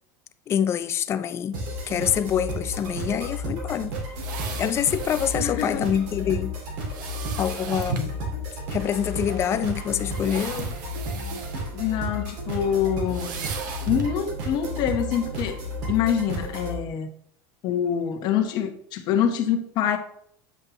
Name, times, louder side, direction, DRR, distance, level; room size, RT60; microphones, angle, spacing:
voice 1, 0.5-4.0 4.6-6.5 7.4-8.2 8.7-10.8, left 9 dB, 25° left, 0.4 m, -26 dB
sound 1, 1.5-16.8, equal, 65° right, 2.4 m, -32 dB
sound 2, 4.1-5.4 6.9-8.2 9.1-9.2 10.0-11.7 12.0-12.2 13.1-14.2 14.6-14.7, right 4 dB, 80° right, 1.1 m, -35 dB
voice 2, 5.3-5.9 11.5-13.4 13.9-15.6 15.9-17.1 17.6-20.0, left 8 dB, 45° left, 1.1 m, -25 dB
8.4 x 5.4 x 3.0 m
supercardioid pair, 150°, 10 cm